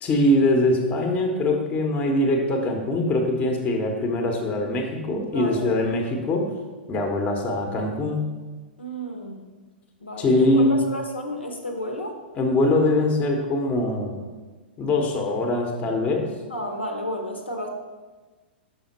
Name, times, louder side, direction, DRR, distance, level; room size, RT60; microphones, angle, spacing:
voice 1, 0.0-6.5 6.9-8.2 10.2-10.9 12.4-14.2 14.8-16.3, left 1 dB, 25° left, 3 dB, 0.9 m, -22 dB
voice 2, 5.3-5.7 8.8-9.4 10.0-12.2 16.5-17.7, equal, 80° left, 3 dB, 1.0 m, -32 dB
5.7 x 5.6 x 4.2 m, 1.3 s
figure-of-eight pair, 105°, 6 cm